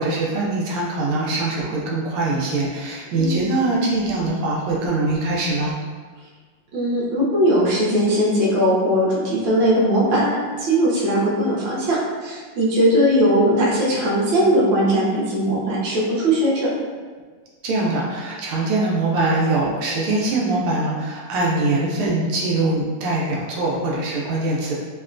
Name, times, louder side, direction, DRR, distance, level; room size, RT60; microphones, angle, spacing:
voice 1, 0.0-5.7 17.6-24.7, right 2 dB, 85° right, -4 dB, 1.5 m, -22 dB
voice 2, 3.1-3.8 6.7-16.7, equal, 65° right, -7 dB, 1.4 m, -19 dB
3.5 x 2.1 x 2.4 m, 1.5 s
omnidirectional pair, 2.3 m